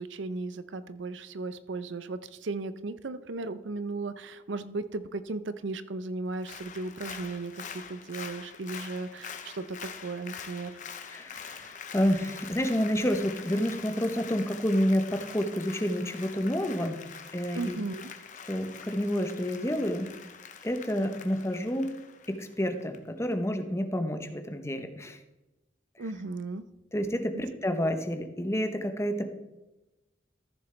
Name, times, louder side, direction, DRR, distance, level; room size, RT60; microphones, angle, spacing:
voice 1, 0.0-10.8 17.5-18.1 26.0-26.6 27.3-27.4, right 3 dB, 80° right, 13 dB, 0.6 m, -36 dB
Applause, 6.3-23.0 23.3-23.4, left 6 dB, 45° left, 0.8 m, -45 dB
voice 2, 11.1-17.0 17.3-17.8 18.5-20.1 20.6-21.9 22.3-25.2 26.9-29.3, equal, 15° left, 7 dB, 0.8 m, -29 dB
14.5 x 6.8 x 3.3 m, 1.0 s
head